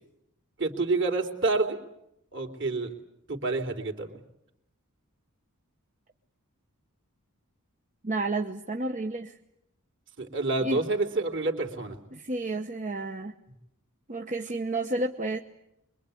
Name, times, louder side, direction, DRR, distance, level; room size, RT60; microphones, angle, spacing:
voice 1, 0.6-1.8 2.3-2.9 3.3-4.1 10.2-12.0, right 3 dB, 55° right, 3 dB, 3.5 m, -28 dB
voice 2, 8.0-9.3 10.6-10.8 12.1-13.3 14.1-15.4, right 2 dB, 35° right, 4 dB, 1.0 m, -31 dB
25.0 x 23.0 x 8.5 m, 0.82 s
head